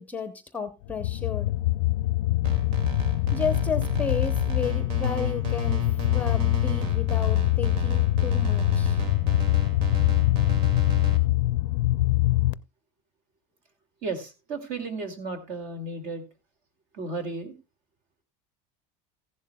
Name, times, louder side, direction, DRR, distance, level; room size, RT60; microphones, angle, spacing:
voice 1, 0.0-1.5 3.0-9.0, left 5 dB, 10° left, 8 dB, 0.7 m, -33 dB
sound 1, 0.9-12.5, left 17 dB, 70° left, 0.4 m, -24 dB
sound 2, 2.4-11.2, right 2 dB, 65° right, 2.2 m, -33 dB
voice 2, 14.0-16.3 16.9-17.6, right 3 dB, 50° right, 7 dB, 2.3 m, -34 dB
15.0 x 11.0 x 2.3 m, 0.26 s
cardioid pair, 170°, 17 cm